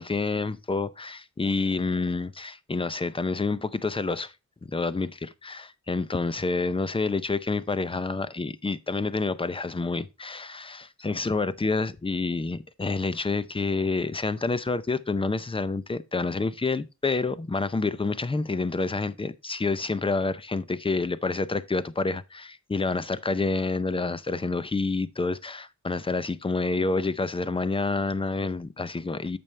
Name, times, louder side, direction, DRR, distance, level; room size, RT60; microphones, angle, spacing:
voice 1, 0.0-4.3 4.6-29.4, left 3 dB, 20° left, 0.5 m, -28 dB
8.8 x 6.9 x 3.2 m
wide cardioid pair, 135°, 29 cm